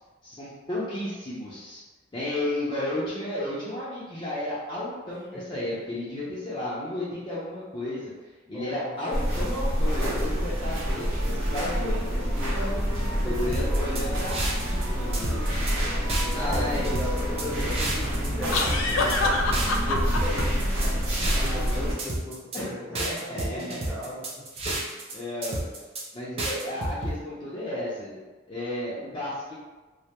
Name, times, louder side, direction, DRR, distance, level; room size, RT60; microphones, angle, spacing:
voice 1, 0.2-1.8 2.1-8.1 8.5-12.7 13.2-15.6 16.3-17.0 17.6-17.7 22.5-22.7 23.0-23.8 24.6-24.8 25.1-25.6 26.1-29.5, left 1 dB, 25° left, -9 dB, 0.5 m, -33 dB
voice 2, 5.1-5.6 8.5-8.9 13.1-13.5 16.1-21.0 21.4-24.4, left 1 dB, 10° right, -9 dB, 0.8 m, -37 dB
sound 1, 9.1-21.9, equal, 80° right, 0.7 m, -27 dB
sound 2, 13.5-14.8 15.1-15.7 16.1-18.3 18.6-19.2 19.5-21.7 22.0-22.6 22.9-25.1 25.4-26.0 26.4-27.1, right 2 dB, 30° right, 0.4 m, -31 dB
sound 3, 15.5-15.7 18.5-20.4, left 3 dB, 80° left, 0.3 m, -26 dB
2.3 x 2.1 x 2.8 m, 1.2 s
head